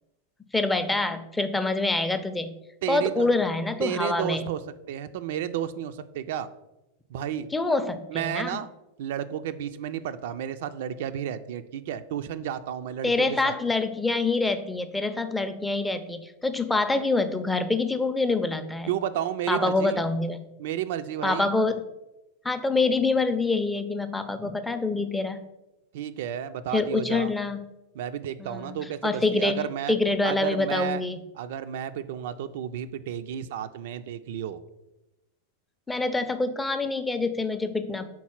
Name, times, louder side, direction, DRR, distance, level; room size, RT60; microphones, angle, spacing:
voice 1, 0.5-2.5 2.9-4.4 7.5-8.6 13.0-18.9 19.5-20.4 21.2-21.8 22.4-25.4 26.7-27.6 28.4-28.8 29.0-31.2 35.9-38.1, left 3 dB, 10° left, 9 dB, 0.5 m, -26 dB
voice 2, 2.8-3.3 3.8-4.6 4.9-6.5 7.1-7.5 8.1-8.7 9.0-13.6 18.9-20.0 20.6-21.5 25.9-27.3 27.9-29.9 30.2-31.0 31.3-34.6, right 10 dB, 55° right, 10 dB, 0.3 m, -32 dB
4.6 x 4.1 x 5.7 m, 0.95 s
figure-of-eight pair, 90°, 0 cm